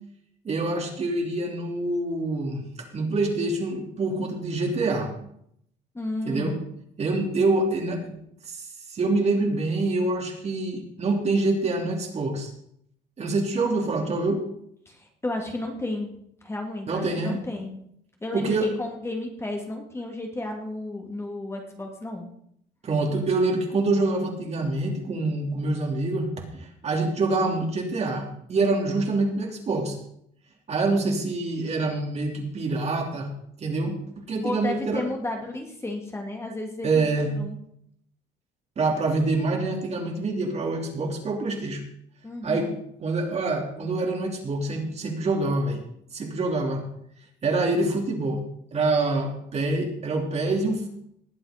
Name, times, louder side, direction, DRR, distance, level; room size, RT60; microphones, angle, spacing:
voice 1, 0.4-5.1 6.2-6.5 7.0-8.2 8.4-12.5 13.2-14.4 16.9-17.4 18.3-18.7 22.8-26.3 26.6-29.9 30.7-33.3 33.6-35.0 36.8-37.3 38.8-41.8 42.4-42.7 43.0-45.8 46.1-46.8 47.4-48.4 48.7-50.9, right 2 dB, 40° right, 2 dB, 3.2 m, -26 dB
voice 2, 5.9-6.7 14.9-16.1 16.4-17.8 18.2-22.3 34.4-37.1 37.4-37.6 42.2-42.8, left 2 dB, 15° left, 2 dB, 2.7 m, -33 dB
19.5 x 7.9 x 5.2 m, 0.70 s
cardioid pair, 110°, 17 cm